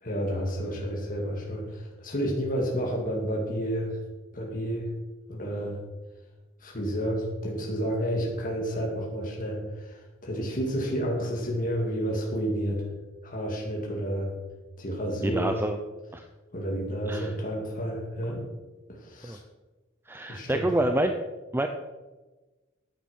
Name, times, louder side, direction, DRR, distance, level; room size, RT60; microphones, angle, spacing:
voice 1, 0.0-4.0 4.3-4.9 5.3-5.8 6.6-12.9 13.2-14.3 14.8-15.5 16.5-18.4 18.9-19.4 20.3-20.7, equal, 40° left, -1 dB, 2.5 m, -30 dB
voice 2, 15.2-15.8 16.1-16.2 17.1-17.3 19.2-19.4 20.1-21.1 21.5-21.7, right 1 dB, 10° right, 6 dB, 0.6 m, -27 dB
10.5 x 9.0 x 6.3 m, 1.2 s
head